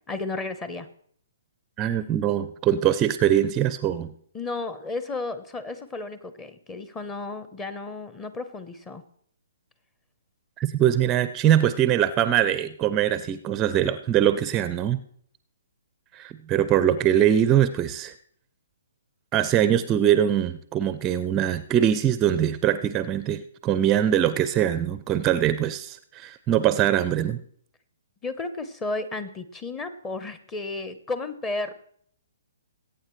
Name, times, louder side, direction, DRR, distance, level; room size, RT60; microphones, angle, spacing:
voice 1, 0.1-0.9 4.3-9.0 28.2-31.7, left 3 dB, 15° left, 11 dB, 1.0 m, -33 dB
voice 2, 1.8-4.1 10.6-15.0 16.1-18.1 19.3-27.4, right 10 dB, 20° right, 13 dB, 0.5 m, -22 dB
21.5 x 8.9 x 3.2 m, 0.62 s
figure-of-eight pair, 130°, 0 cm